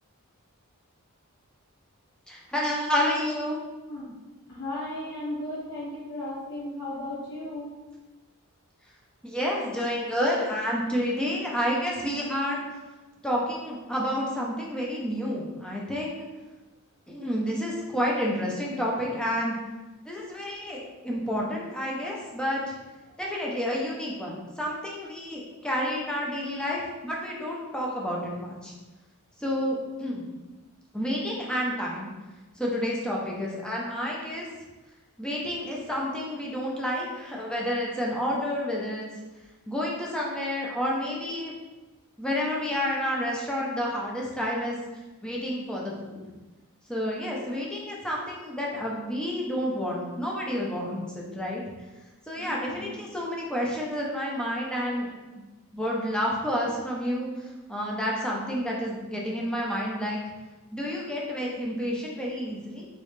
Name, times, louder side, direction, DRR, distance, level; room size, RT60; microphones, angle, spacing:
voice 1, 2.3-3.6 9.2-12.6 13.2-16.3 17.1-19.6 20.0-22.7 23.2-28.7 29.4-30.2 30.9-32.1 32.6-34.5 35.2-39.1 39.7-41.5 42.2-44.8 45.2-46.2 46.9-51.6 52.3-55.1 55.7-60.2 60.7-62.9, equal, 5° left, -3 dB, 0.6 m, -30 dB
voice 2, 4.5-7.7 52.4-52.9, left 1 dB, 55° left, -11 dB, 1.2 m, -35 dB
3.2 x 3.0 x 3.2 m, 1.2 s
head